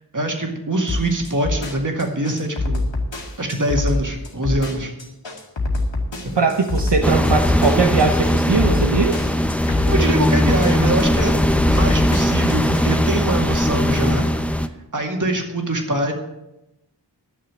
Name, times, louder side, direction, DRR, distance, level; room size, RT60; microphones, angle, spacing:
voice 1, 0.1-2.9 3.4-4.9 6.2-6.4 9.8-11.3 11.7-14.3 14.9-16.1, right 1 dB, 45° right, 2 dB, 2.2 m, -23 dB
sound 1, 0.9-12.9, left 2 dB, 85° left, 2.0 m, -25 dB
voice 2, 6.4-9.3, right 4 dB, 70° right, 3 dB, 1.0 m, -20 dB
sound 2, 7.0-14.7, left 1 dB, 5° left, 0.7 m, -19 dB
11.5 x 6.7 x 7.6 m, 0.95 s
wide cardioid pair, 60°, 43 cm